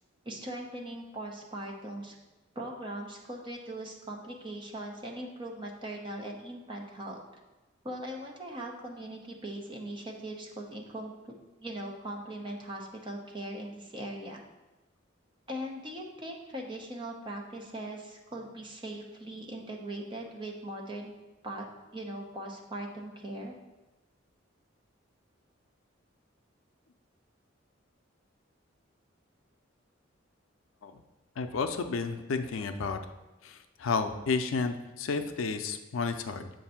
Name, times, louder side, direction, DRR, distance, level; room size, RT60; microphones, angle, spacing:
voice 1, 0.2-2.1 2.6-7.2 7.8-11.1 11.6-14.4 15.5-21.1 21.4-21.7 21.9-23.6, right 1 dB, 25° right, 0 dB, 0.8 m, -40 dB
voice 2, 31.4-33.0 33.4-36.5, left 4 dB, 85° left, 8 dB, 0.4 m, -32 dB
7.3 x 2.6 x 5.6 m, 1.1 s
head